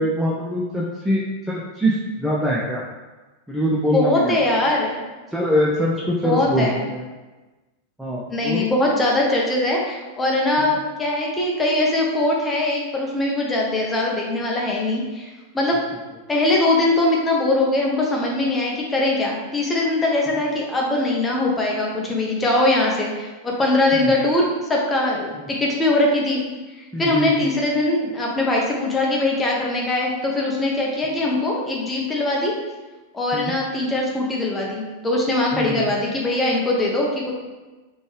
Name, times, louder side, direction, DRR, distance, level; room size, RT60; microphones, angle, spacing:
voice 1, 0.0-2.8 3.5-4.4 5.3-7.0 8.0-8.7 10.6-10.7 20.3-20.4 23.9-24.1 25.3-25.5 26.9-27.5 33.3-33.5 35.5-35.9, equal, 5° right, -5 dB, 0.5 m, -23 dB
voice 2, 3.9-5.0 6.2-6.8 8.3-15.8 16.3-26.4 27.0-32.5 33.1-37.3, left 2 dB, 15° left, -2 dB, 0.9 m, -21 dB
4.2 x 3.1 x 3.2 m, 1.2 s
figure-of-eight pair, 90°, 0 cm